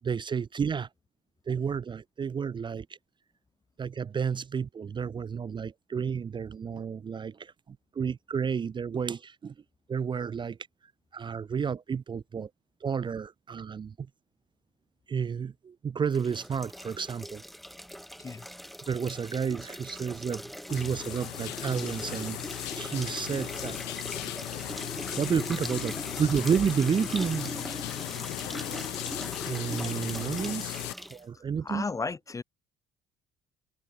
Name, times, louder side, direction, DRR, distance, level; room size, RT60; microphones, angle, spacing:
voice 1, 0.0-0.9 1.5-2.9 3.8-9.5 9.9-10.6 11.1-12.5 12.8-14.1 15.1-17.4 18.9-20.4 20.7-23.8 24.1-24.3 25.2-27.6 29.4-30.8 31.1-31.8, right 6 dB, 30° right, 0.5 m, -31 dB
sound 1, 16.1-31.2, equal, ahead, 1.4 m, -40 dB
sound 2, 20.7-30.9, left 20 dB, 85° left, 0.6 m, -37 dB
voice 2, 31.7-32.4, left 4 dB, 20° left, 0.6 m, -34 dB
cardioid pair, 110°, 17 cm